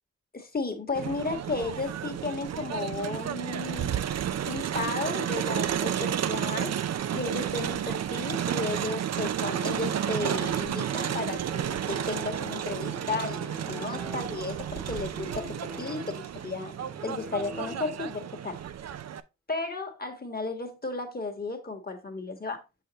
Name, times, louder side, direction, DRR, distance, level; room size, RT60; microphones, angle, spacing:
voice 1, 0.3-16.7 17.0-18.6 19.5-22.6, left 3 dB, 30° left, 1.6 m, -34 dB
Crowd, 0.9-19.2, right 9 dB, 60° right, 0.5 m, -32 dB
sound 1, 10.8-18.3, left 1 dB, 5° left, 1.1 m, -45 dB
6.4 x 5.7 x 2.9 m
cardioid pair, 55°, 30 cm